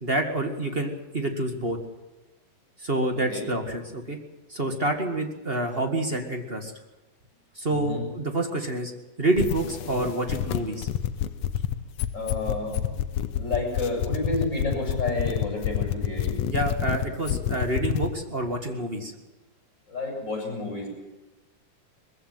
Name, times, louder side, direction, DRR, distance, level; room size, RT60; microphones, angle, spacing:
voice 1, 0.0-1.8 2.8-4.2 4.5-6.7 7.6-8.9 9.2-10.9 16.5-19.1, right 1 dB, 25° right, 4 dB, 1.3 m, -27 dB
voice 2, 3.1-3.4 7.7-8.0 12.1-16.4 19.9-20.9, left 3 dB, 30° left, 0 dB, 7.3 m, -30 dB
sound 1, 9.3-18.1, left 12 dB, 75° left, 1.5 m, -27 dB
22.0 x 15.5 x 9.3 m, 1.1 s
omnidirectional pair, 4.1 m